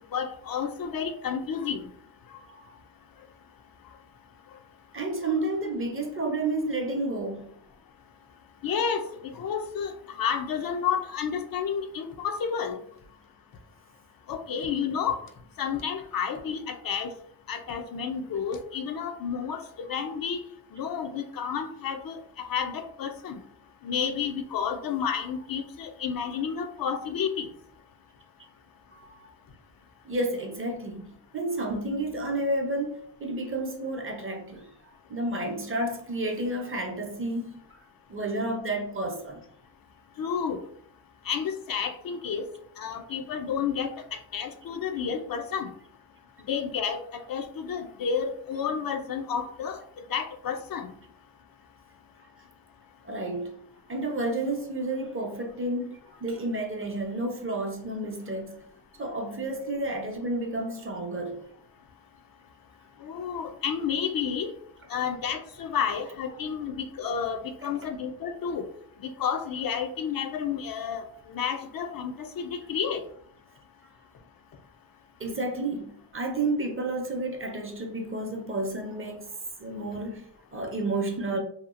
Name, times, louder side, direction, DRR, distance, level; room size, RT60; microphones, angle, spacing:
voice 1, 0.1-1.9 8.6-12.8 14.3-15.2 15.6-17.1 17.5-19.6 19.9-20.4 20.7-22.2 22.5-23.4 23.8-27.5 40.2-40.6 41.3-42.4 42.8-43.9 44.3-45.7 46.5-49.8 50.1-50.9 63.0-64.5 64.9-68.6 69.0-71.0 71.3-73.0, left 7 dB, 55° left, 0.5 m, -30 dB
voice 2, 2.4-2.7 4.9-7.6 12.2-12.3 20.0-20.1 25.2-25.4 28.9-29.3 30.0-34.7 35.1-37.6 38.1-39.4 53.0-53.5 53.9-58.6 59.0-61.4 66.3-66.4 67.6-67.9 75.2-79.3 79.6-81.4, right 2 dB, 30° right, 0.7 m, -31 dB
2.8 x 2.3 x 2.4 m
cardioid pair, 75°, 42 cm